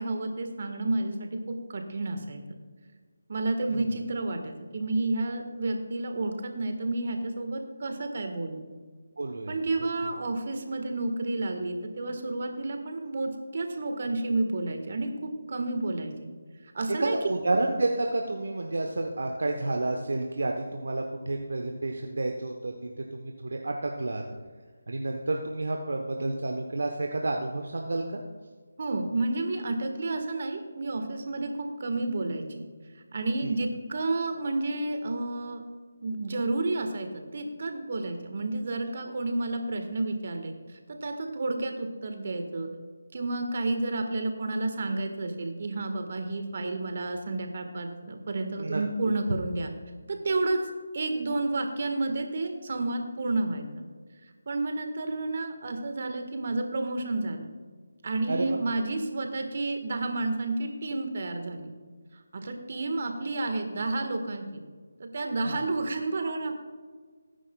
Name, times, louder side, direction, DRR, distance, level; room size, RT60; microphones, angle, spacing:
voice 1, 0.0-2.4 3.3-8.6 9.5-16.1 16.7-17.2 28.8-32.6 32.9-35.6 36.0-42.7 43.1-49.7 50.1-50.6 50.9-53.8 54.5-57.5 58.0-61.7 62.1-64.6 65.0-66.6, right 2 dB, 50° right, 5 dB, 1.4 m, -31 dB
voice 2, 9.2-9.5 17.0-22.7 23.1-24.2 24.9-28.2 33.4-33.5 39.0-39.1 48.6-48.8 58.3-58.6 65.5-65.6, right 2 dB, 65° right, 2 dB, 0.9 m, -30 dB
19.0 x 10.0 x 2.3 m, 1.5 s
figure-of-eight pair, 155°, 0 cm